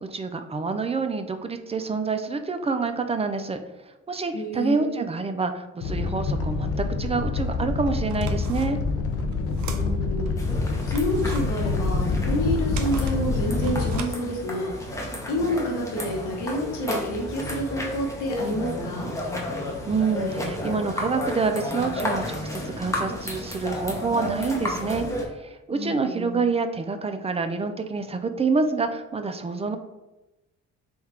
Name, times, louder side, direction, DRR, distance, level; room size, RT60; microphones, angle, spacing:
voice 1, 0.1-3.6 4.1-8.8 19.9-29.8, right 4 dB, 20° right, 8 dB, 0.4 m, -27 dB
voice 2, 4.3-5.0 9.6-10.3 10.7-14.7 15.3-19.1 25.7-26.3, equal, 90° left, 0 dB, 1.1 m, -29 dB
Animal, 5.8-14.0, left 4 dB, 50° left, 0.5 m, -26 dB
sound 1, 7.5-7.6 8.0-10.3 10.7-14.9, right 6 dB, 70° right, 0.5 m, -41 dB
sound 2, 10.4-25.3, left 1 dB, 10° left, 0.8 m, -32 dB
3.5 x 2.4 x 4.2 m, 1.0 s
cardioid pair, 90°, 30 cm